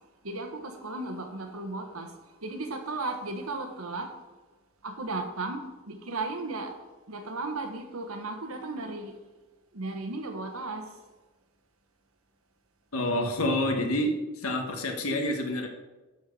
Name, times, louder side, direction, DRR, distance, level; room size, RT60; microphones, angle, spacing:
voice 1, 0.2-2.1 2.4-4.1 4.8-6.7 7.1-9.1 9.7-10.8, right 2 dB, 85° right, 1.3 m, -35 dB
voice 2, 12.9-15.7, left 1 dB, 90° left, 1.5 m, -28 dB
13.0 x 4.6 x 5.4 m
head